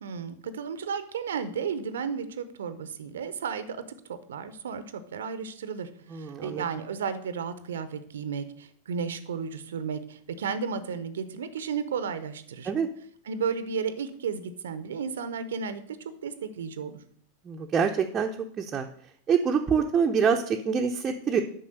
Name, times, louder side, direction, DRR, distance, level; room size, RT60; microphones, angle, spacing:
voice 1, 0.0-3.8 4.1-12.7 13.3-16.0 16.2-17.0, right 6 dB, 65° right, 13 dB, 0.7 m, -33 dB
voice 2, 6.1-6.6 12.7-12.9 17.4-18.3 18.6-18.9 19.3-21.4, right 6 dB, 25° right, 2 dB, 0.7 m, -25 dB
8.5 x 5.7 x 6.4 m, 0.62 s
figure-of-eight pair, 90°, 0 cm